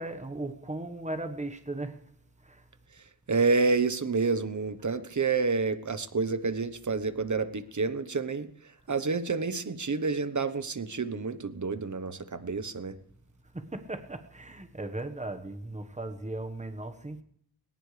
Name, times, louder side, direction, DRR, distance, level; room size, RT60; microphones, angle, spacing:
voice 1, 0.0-2.0 2.4-2.6 13.5-17.2, right 2 dB, 20° right, 1.4 m, -37 dB
voice 2, 3.3-8.5 8.9-12.9, right 4 dB, 45° right, 1.2 m, -29 dB
20.0 x 18.5 x 3.4 m
wide cardioid pair, 95°, 39 cm